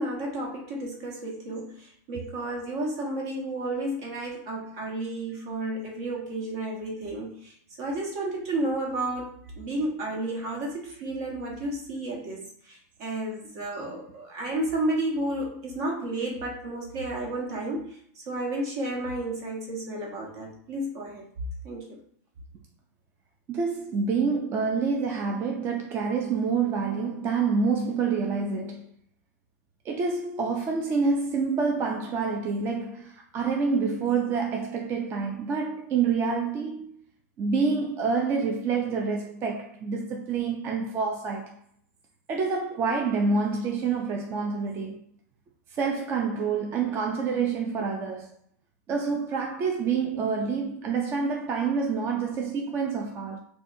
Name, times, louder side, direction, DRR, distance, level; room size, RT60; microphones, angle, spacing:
voice 1, 0.0-21.2 21.6-22.0, right 1 dB, 55° right, 1.2 m, -32 dB
voice 2, 23.5-28.9 29.8-36.9 37.4-41.5 42.3-45.0 45.7-48.3 48.9-53.4, right 5 dB, 25° right, 0.4 m, -27 dB
4.1 x 2.2 x 2.6 m
hypercardioid pair, 140°, 9 cm